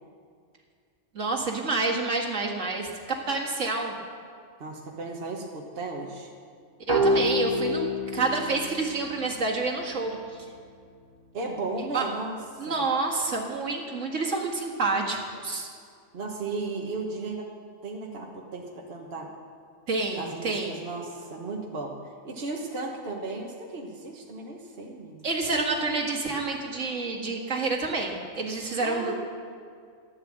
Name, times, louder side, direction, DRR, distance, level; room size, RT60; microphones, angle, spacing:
voice 1, 1.1-2.9 3.3-4.0 6.9-10.5 11.9-12.1 12.6-15.7 19.9-20.8 25.2-29.1, right 3 dB, 65° right, 0 dB, 2.1 m, -28 dB
voice 2, 4.6-6.3 11.3-12.8 16.1-17.5 17.8-19.3 20.1-22.0 22.2-25.3 28.8-29.1, right 3 dB, 50° right, -1 dB, 1.5 m, -35 dB
sound 1, 6.9-10.4, left 1 dB, 20° left, 2.6 m, -28 dB
14.5 x 10.0 x 7.4 m, 2.2 s
omnidirectional pair, 1.4 m